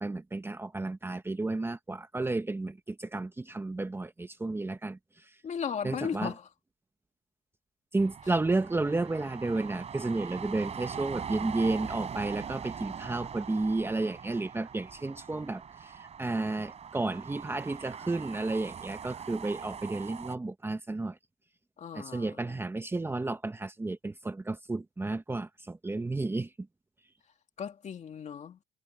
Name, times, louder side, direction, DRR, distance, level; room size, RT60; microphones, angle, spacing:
voice 1, 0.0-5.0 5.8-6.3 7.9-21.2 21.9-26.5, right 2 dB, 15° right, 1.0 m, -32 dB
voice 2, 5.4-6.5 21.8-22.6 27.6-28.6, left 7 dB, 45° left, 2.3 m, -36 dB
sound 1, 8.0-20.4, right 7 dB, 40° right, 3.9 m, -42 dB
cardioid pair, 110°, 17 cm